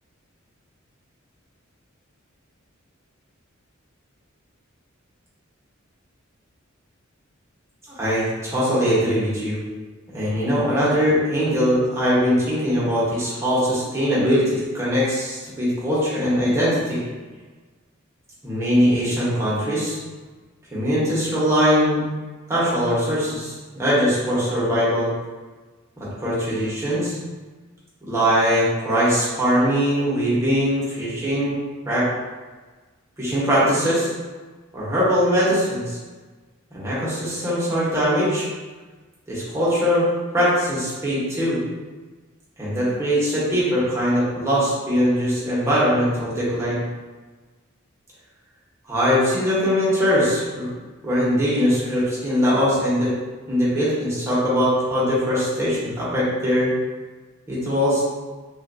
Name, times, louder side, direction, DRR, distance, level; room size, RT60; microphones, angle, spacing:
voice 1, 8.0-9.6 10.1-17.0 18.4-20.0 20.7-22.0 22.5-25.1 26.0-27.2 28.0-31.6 31.8-32.1 33.2-34.1 34.7-36.0 36.7-38.5 39.3-40.1 40.3-41.6 42.6-46.8 48.9-50.7 51.0-53.1 53.5-56.7 57.5-58.0, equal, 15° right, -9 dB, 1.0 m, -21 dB
3.3 x 2.5 x 2.5 m, 1.3 s
head